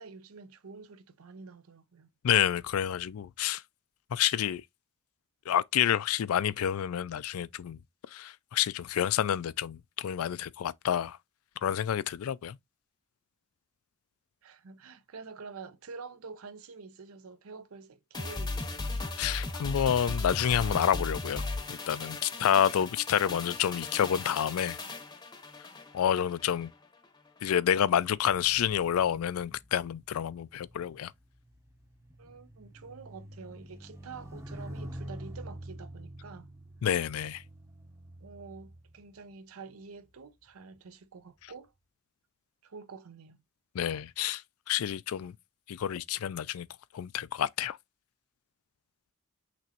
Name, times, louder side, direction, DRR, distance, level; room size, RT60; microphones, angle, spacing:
voice 1, 0.0-2.1 14.4-19.2 22.4-22.9 32.2-36.5 38.2-41.7 42.6-43.4, right 4 dB, 75° right, 0.6 m, -48 dB
voice 2, 2.2-3.6 4.1-4.6 5.5-7.8 8.1-11.2 11.6-12.6 19.2-24.8 25.9-26.7 27.4-31.1 36.8-37.4 43.7-44.4 44.7-45.3 45.7-46.7 46.9-47.8, left 9 dB, 80° left, 0.4 m, -28 dB
sound 1, 18.1-26.7 27.0-27.2, left 3 dB, 20° left, 0.8 m, -37 dB
sound 2, 28.1-39.7 40.5-40.8, equal, 15° right, 0.8 m, -47 dB
6.0 x 3.0 x 2.9 m
head